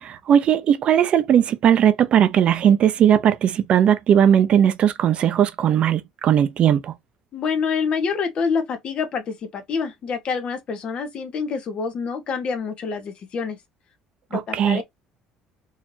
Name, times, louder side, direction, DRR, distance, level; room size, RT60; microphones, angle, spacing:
voice 1, 0.0-6.9 14.3-14.8, right 9 dB, 50° right, 0.8 m, -18 dB
voice 2, 7.3-13.6 14.3-14.8, left 5 dB, 45° left, 1.6 m, -26 dB
4.6 x 3.4 x 2.9 m
cardioid pair, 105°, 2 cm